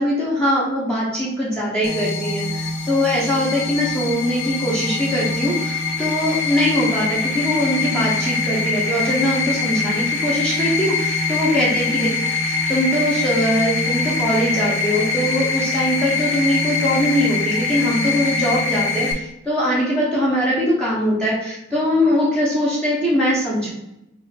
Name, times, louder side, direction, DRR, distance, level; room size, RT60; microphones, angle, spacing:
voice 1, 0.0-12.1 12.4-23.7, equal, 5° left, -8 dB, 0.8 m, -21 dB
sound 1, 1.8-19.1, left 3 dB, 85° left, 0.7 m, -23 dB
4.4 x 2.5 x 3.4 m, 0.89 s
head